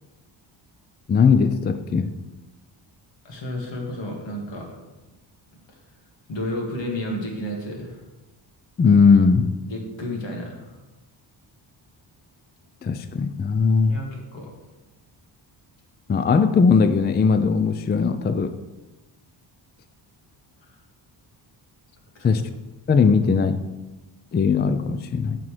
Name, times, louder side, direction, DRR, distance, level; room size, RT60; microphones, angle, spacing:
voice 1, 1.1-2.1 8.8-9.5 12.8-14.0 16.1-18.5 22.2-22.4 22.9-23.6 24.3-25.4, left 5 dB, 25° left, 10 dB, 0.3 m, -19 dB
voice 2, 3.2-4.8 6.3-8.0 9.7-10.8 13.9-14.5 20.6-20.8 22.2-22.4, left 1 dB, 70° left, 0 dB, 2.0 m, -32 dB
9.2 x 6.1 x 3.3 m, 1.1 s
cardioid pair, 95°, 46 cm